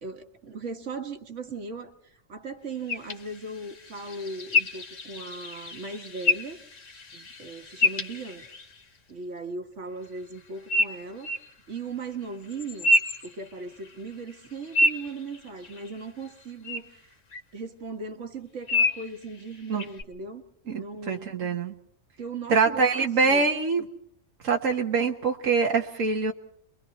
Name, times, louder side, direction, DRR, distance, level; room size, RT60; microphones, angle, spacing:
voice 1, 0.0-6.6 7.1-8.5 9.1-11.3 11.7-12.9 13.2-17.1 17.5-20.4 20.8-21.4 22.2-23.5, right 3 dB, 70° right, 1.9 m, -38 dB
sound 1, 2.9-8.8 10.7-11.5 12.5-13.9 14.3-16.0 16.6-16.8 17.3-17.4 18.7-19.1 19.8-20.0, left 2 dB, 80° left, 2.1 m, -28 dB
voice 2, 20.7-21.7 22.5-23.8 24.4-26.3, right 4 dB, 90° right, 1.7 m, -24 dB
30.0 x 23.0 x 4.2 m
omnidirectional pair, 1.3 m